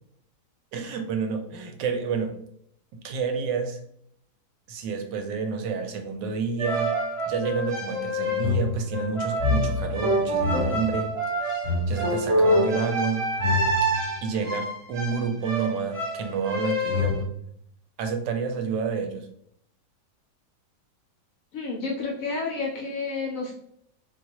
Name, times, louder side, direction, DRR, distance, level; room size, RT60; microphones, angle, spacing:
voice 1, 0.7-2.4 2.9-3.8 4.7-6.9 7.3-11.1 11.4-11.6 11.9-13.3 14.2-17.3 18.0-19.3, right 5 dB, 85° right, 6 dB, 1.2 m, -29 dB
sound 1, 6.6-17.2, left 1 dB, 25° right, 0.8 m, -26 dB
voice 2, 21.5-23.5, left 4 dB, 70° left, -1 dB, 0.8 m, -30 dB
3.8 x 2.3 x 2.8 m, 0.71 s
omnidirectional pair, 1.9 m